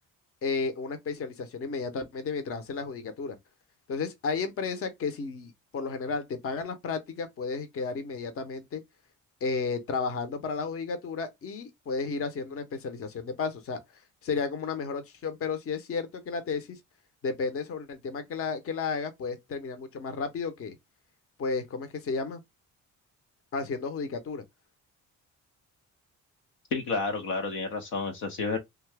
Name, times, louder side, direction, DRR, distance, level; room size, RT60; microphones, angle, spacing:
voice 1, 0.4-3.4 3.9-8.8 9.4-13.8 14.2-16.8 17.2-20.8 21.4-22.4 23.5-24.4, left 4 dB, 50° left, 0.7 m, -33 dB
voice 2, 26.7-28.6, left 3 dB, 90° left, 0.9 m, -30 dB
2.7 x 2.3 x 3.3 m
cardioid pair, 90°, 30 cm